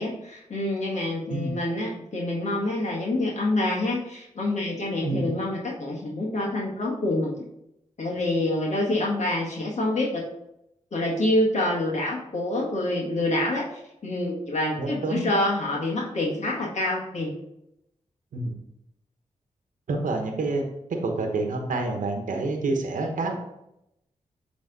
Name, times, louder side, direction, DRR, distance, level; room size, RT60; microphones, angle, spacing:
voice 1, 0.0-7.3 8.0-10.2 10.9-17.3, left 1 dB, 60° left, -3 dB, 1.7 m, -27 dB
voice 2, 5.0-5.3 14.8-15.3 18.3-18.5 19.9-20.6 21.0-23.3, right 3 dB, 80° right, 3 dB, 1.0 m, -28 dB
7.3 x 3.5 x 3.9 m, 0.82 s
cardioid pair, 50°, 13 cm